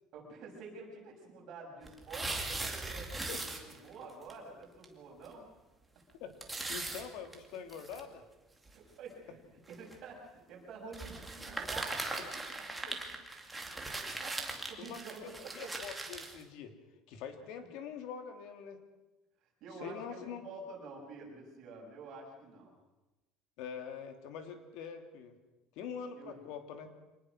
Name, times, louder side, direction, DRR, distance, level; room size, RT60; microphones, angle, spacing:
voice 1, 0.1-5.5 8.7-12.9 13.8-15.8 17.4-17.5 19.6-22.8 26.2-26.4, right 3 dB, 45° right, -1 dB, 7.1 m, -49 dB
sound 1, 1.8-4.0 4.3-4.4 4.8-4.9 5.3-5.4 6.4-8.0 8.7-8.8 9.7-10.0 10.9-16.4, right 2 dB, 5° right, 2.4 m, -39 dB
voice 2, 6.7-8.2 12.9-13.0 14.8-16.7 17.1-18.8 19.8-20.4 23.6-25.3 25.8-26.9, left 7 dB, 65° left, 6 dB, 3.0 m, -44 dB
25.0 x 19.5 x 6.3 m, 1.1 s
cardioid pair, 165°, 0 cm